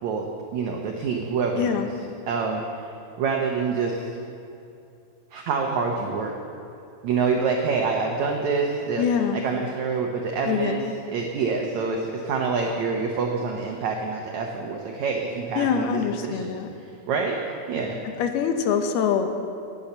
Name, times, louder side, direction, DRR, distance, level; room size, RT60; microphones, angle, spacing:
voice 1, 0.0-1.9 2.3-2.6 3.2-4.1 5.3-6.3 7.0-9.0 9.4-10.8 11.1-16.6 17.1-17.4 17.7-18.0, right 5 dB, 85° right, 1 dB, 1.6 m, -26 dB
voice 2, 1.6-1.9 9.0-9.4 10.5-10.9 15.6-16.7 18.2-19.5, left 7 dB, 80° left, 6 dB, 2.8 m, -24 dB
17.5 x 7.1 x 6.7 m, 2.6 s
omnidirectional pair, 4.5 m